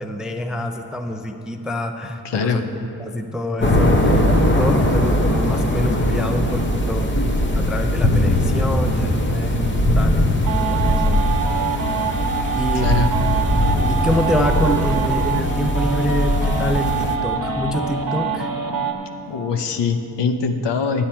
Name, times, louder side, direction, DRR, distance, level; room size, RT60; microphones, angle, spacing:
voice 1, 0.0-4.2 4.6-7.2 7.5-10.2 10.7-11.2 12.5-13.1 13.9-18.5, equal, ahead, 5 dB, 0.3 m, -26 dB
voice 2, 2.2-2.6 12.7-13.1 19.3-21.0, left 5 dB, 70° left, 7 dB, 0.8 m, -22 dB
sound 1, 3.6-17.2, left 1 dB, 25° left, 0.8 m, -20 dB
sound 2, 10.4-18.9, right 5 dB, 50° right, 0.9 m, -25 dB
11.0 x 8.8 x 4.4 m, 2.7 s
wide cardioid pair, 130°, 44 cm